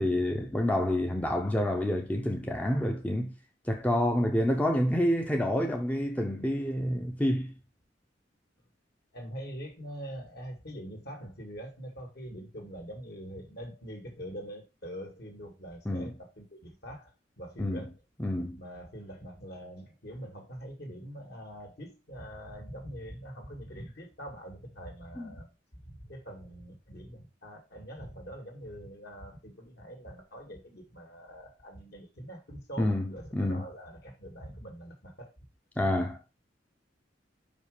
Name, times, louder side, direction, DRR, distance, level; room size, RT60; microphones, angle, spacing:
voice 1, 0.0-3.3 3.7-7.5 15.9-16.1 17.6-17.8 18.2-18.6 25.2-25.3 32.8-33.7 35.8-36.2, left 1 dB, 10° left, 0.7 m, -28 dB
voice 2, 9.1-17.9 18.6-25.5 25.8-35.3, equal, 60° left, 2.1 m, -44 dB
5.3 x 5.1 x 4.9 m
head